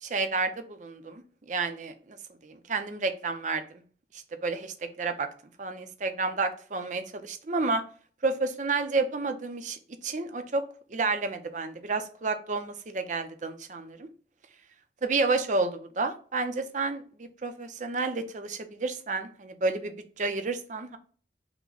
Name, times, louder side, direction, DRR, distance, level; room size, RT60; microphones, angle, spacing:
voice 1, 0.0-2.2 2.4-3.8 4.1-5.3 5.6-7.8 8.2-10.6 10.9-14.1 15.0-21.0, right 3 dB, 45° right, 0.6 m, -30 dB
5.9 x 2.2 x 3.9 m
head